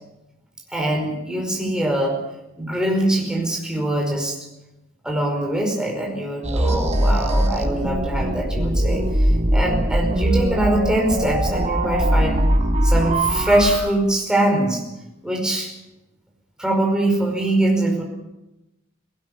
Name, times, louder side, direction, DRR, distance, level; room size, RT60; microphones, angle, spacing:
voice 1, 0.7-2.2 2.5-4.4 5.0-12.4 12.8-14.8 15.2-15.7 16.6-18.0, right 1 dB, 5° right, 0 dB, 5.0 m, -22 dB
sound 1, 6.4-13.8, right 1 dB, 30° right, 3.6 m, -21 dB
18.5 x 18.0 x 8.4 m, 0.97 s
head